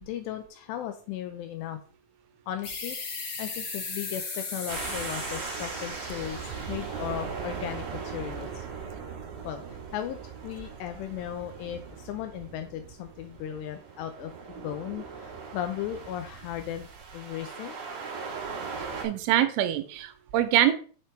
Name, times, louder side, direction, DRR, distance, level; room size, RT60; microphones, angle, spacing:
voice 1, 0.0-1.8 2.5-3.0 3.4-8.7 9.4-16.9 17.1-17.8, left 11 dB, 90° left, 7 dB, 2.4 m, -36 dB
sound 1, 2.6-7.9, left 4 dB, 70° left, 1.5 m, -38 dB
sound 2, 4.7-19.1, right 5 dB, 55° right, 3.3 m, -39 dB
voice 2, 19.0-20.8, right 12 dB, 85° right, 9 dB, 3.2 m, -24 dB
9.0 x 4.5 x 3.2 m, 0.40 s
omnidirectional pair, 5.5 m